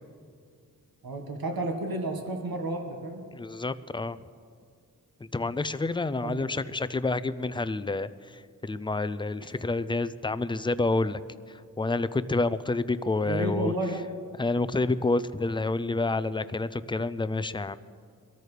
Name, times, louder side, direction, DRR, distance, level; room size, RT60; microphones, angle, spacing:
voice 1, 1.0-3.3 6.2-6.5 13.3-14.0, right 2 dB, 75° right, 3 dB, 1.5 m, -31 dB
voice 2, 3.3-4.2 5.3-11.2 11.5-13.7 14.4-17.8, left 3 dB, 15° left, 14 dB, 0.4 m, -29 dB
23.0 x 13.5 x 3.3 m, 2.1 s
wide cardioid pair, 85°, 35 cm